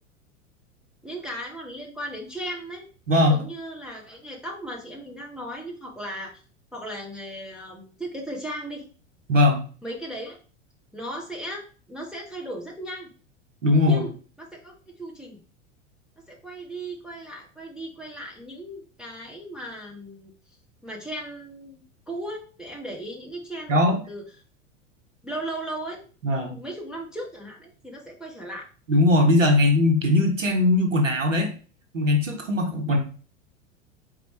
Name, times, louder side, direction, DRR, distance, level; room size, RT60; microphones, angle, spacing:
voice 1, 1.0-2.9 3.2-6.4 6.7-8.8 9.8-10.4 10.9-13.1 13.8-14.1 14.4-15.4 16.3-20.3 20.8-24.2 25.2-26.0 26.4-28.7, right 1 dB, ahead, -2 dB, 0.3 m, -36 dB
voice 2, 3.1-3.4 9.3-9.6 13.6-14.0 23.7-24.0 26.2-26.5 28.9-31.5 31.9-33.0, left 2 dB, 80° right, 2 dB, 0.9 m, -20 dB
4.1 x 2.3 x 4.0 m, 0.38 s
figure-of-eight pair, 85°, 37 cm